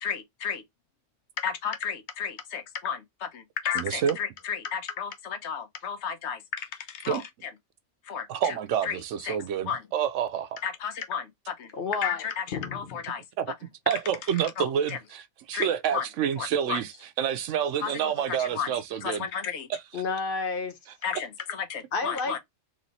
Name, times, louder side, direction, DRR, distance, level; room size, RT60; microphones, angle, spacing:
voice 1, 0.0-0.6 1.4-7.5 8.0-8.6 8.8-9.0 9.2-9.4 9.7-9.8 10.6-11.7 12.0-13.2 14.6-15.0 15.5-16.1 16.4-16.8 17.8-19.7 21.0-22.4, left 7 dB, 70° left, 1.0 m, -33 dB
voice 2, 3.8-4.2 7.1-7.2 8.3-10.6 13.4-13.5 13.9-16.9 17.2-19.3, right 8 dB, 85° right, 1.0 m, -28 dB
voice 3, 11.8-12.2 12.5-12.9 19.9-20.8 21.9-22.4, left 4 dB, 50° left, 1.2 m, -30 dB
3.2 x 3.1 x 4.0 m
omnidirectional pair, 1.2 m